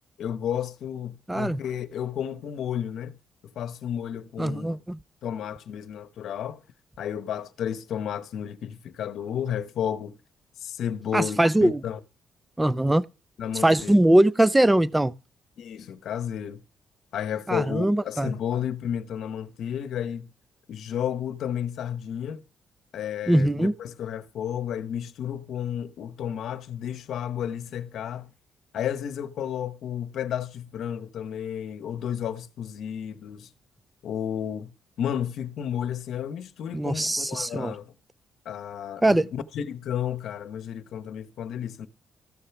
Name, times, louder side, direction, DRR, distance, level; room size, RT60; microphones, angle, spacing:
voice 1, 0.2-3.2 3.6-4.8 5.2-6.6 7.0-10.1 10.6-12.0 13.4-14.0 15.6-16.6 17.1-20.3 20.7-22.4 22.9-28.3 28.7-33.5 34.0-37.9 38.4-41.9, left 9 dB, 75° left, 0.9 m, -32 dB
voice 2, 1.3-1.6 4.4-5.0 11.1-11.8 12.6-13.0 13.6-15.1 17.5-18.3 23.3-23.7 36.7-37.7 39.0-39.3, right 1 dB, 10° right, 0.5 m, -21 dB
14.0 x 6.8 x 5.9 m
cardioid pair, 90°, 0 cm